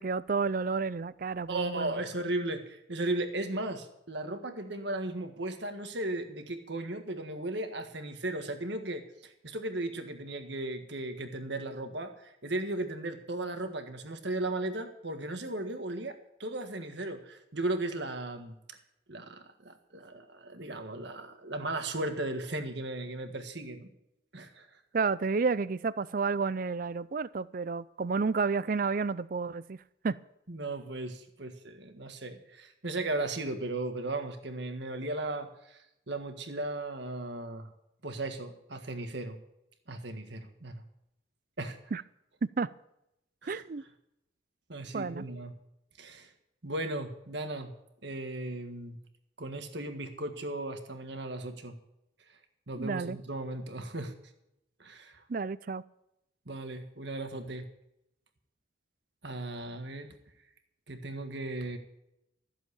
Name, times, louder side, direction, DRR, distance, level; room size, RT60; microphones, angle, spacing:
voice 1, 0.0-1.9 24.9-30.2 41.9-42.0 42.4-42.7 43.5-43.8 44.9-45.2 52.8-53.2 55.3-55.8, right 4 dB, 45° right, 18 dB, 0.4 m, -31 dB
voice 2, 1.5-18.8 19.1-23.9 24.3-24.8 30.5-37.7 38.0-39.4 39.9-40.8 41.6-41.8 43.4-43.6 44.7-45.5 46.0-46.3 46.6-47.7 48.0-49.0 49.4-51.8 52.3-52.4 52.7-54.1 54.8-55.2 56.5-57.7 59.2-60.2 60.9-61.8, right 2 dB, 65° right, 6 dB, 1.7 m, -36 dB
14.5 x 7.6 x 8.5 m, 0.84 s
head